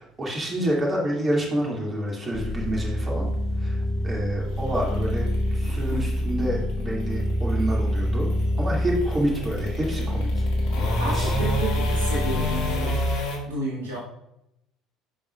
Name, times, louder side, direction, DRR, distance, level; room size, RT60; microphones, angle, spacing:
voice 1, 0.0-3.3 3.6-8.3 8.6-10.4 11.1-11.3, right 1 dB, 30° right, -2 dB, 2.4 m, -28 dB
sound 1, 1.5-13.4, left 2 dB, 65° left, 1.3 m, -33 dB
sound 2, 2.3-13.2, equal, 25° left, 1.0 m, -26 dB
voice 2, 10.9-13.0 13.4-14.0, right 1 dB, 80° right, -6 dB, 2.1 m, -31 dB
10.5 x 5.3 x 2.4 m, 0.81 s
figure-of-eight pair, 60°, 0 cm